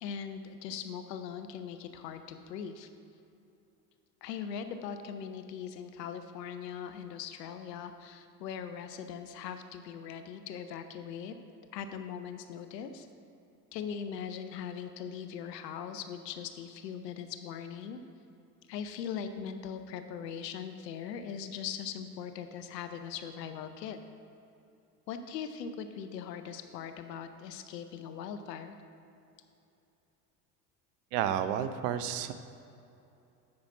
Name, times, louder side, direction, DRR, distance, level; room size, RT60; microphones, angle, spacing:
voice 1, 0.0-2.9 4.2-11.3 11.7-13.1 13.7-18.0 18.7-24.0 25.1-28.8, left 7 dB, 80° left, 8 dB, 0.7 m, -40 dB
voice 2, 31.1-32.3, right 9 dB, 70° right, 11 dB, 0.7 m, -31 dB
8.6 x 5.7 x 4.7 m, 2.8 s
hypercardioid pair, 70°, 48 cm